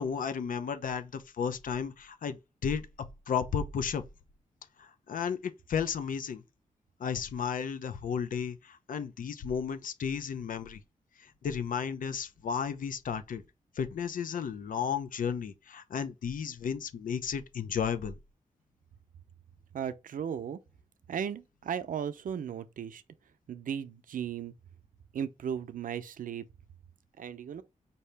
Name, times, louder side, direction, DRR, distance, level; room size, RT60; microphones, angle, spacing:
voice 1, 0.0-2.9 3.3-4.0 4.8-6.4 7.0-10.8 11.2-13.4 13.8-18.2, left 7 dB, 75° left, 0.6 m, -33 dB
voice 2, 19.7-20.6 21.1-23.0 23.5-24.5 25.1-26.5 27.2-27.6, right 8 dB, 80° right, 0.5 m, -36 dB
5.3 x 2.8 x 3.3 m
wide cardioid pair, 95°, 14 cm